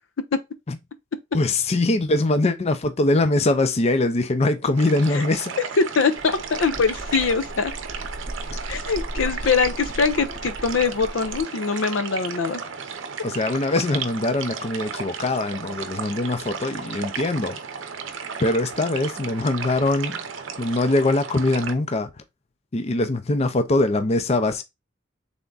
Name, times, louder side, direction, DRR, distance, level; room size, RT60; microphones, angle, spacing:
voice 1, 1.3-5.6 13.2-17.9 18.4-20.2 20.6-22.2 22.7-24.6, left 2 dB, 35° left, 0.5 m, -22 dB
sound 1, 4.8-21.7, right 6 dB, 70° right, 0.7 m, -34 dB
voice 2, 6.0-7.7 8.7-12.6, left 5 dB, 80° left, 0.6 m, -23 dB
sound 2, 6.2-11.4, right 1 dB, 35° right, 0.7 m, -36 dB
3.6 x 3.4 x 3.8 m
head